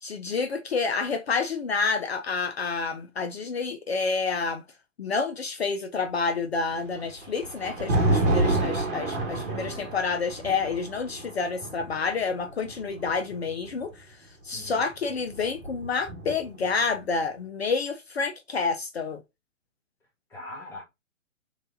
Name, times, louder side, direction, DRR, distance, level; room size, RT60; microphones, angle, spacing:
voice 1, 0.0-4.6 5.0-19.2, left 4 dB, 55° left, 0.5 m, -29 dB
Thunder, 6.7-13.9 14.9-16.7, right 2 dB, 40° right, 1.2 m, -29 dB
voice 2, 9.0-9.9 14.5-14.9 20.3-20.8, left 2 dB, 5° left, 0.9 m, -43 dB
3.3 x 3.2 x 2.4 m
figure-of-eight pair, 130°, 39 cm